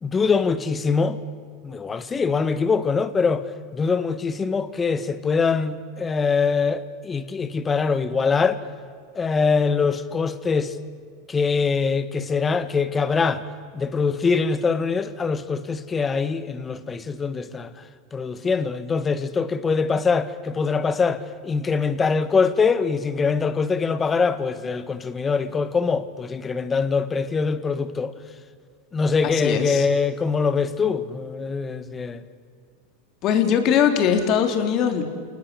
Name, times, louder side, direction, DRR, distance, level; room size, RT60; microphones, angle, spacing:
voice 1, 0.0-1.2 1.6-3.5 3.7-8.6 9.1-10.8 11.3-13.4 13.7-17.7 18.1-28.1 28.9-32.2, left 5 dB, 20° left, 1.6 m, -23 dB
voice 2, 29.2-29.9 33.2-35.0, left 8 dB, 45° left, 3.6 m, -21 dB
29.0 x 19.0 x 8.4 m
hypercardioid pair, 115°, 0 cm